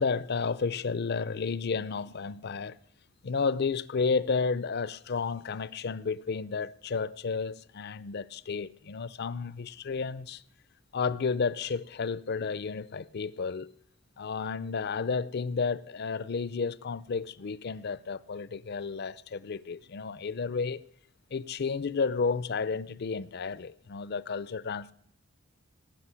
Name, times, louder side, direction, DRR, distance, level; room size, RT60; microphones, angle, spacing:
voice 1, 0.0-2.8 3.2-10.4 10.9-13.7 14.2-20.8 21.3-24.9, left 5 dB, 55° left, 0.5 m, -32 dB
18.5 x 6.3 x 9.9 m
head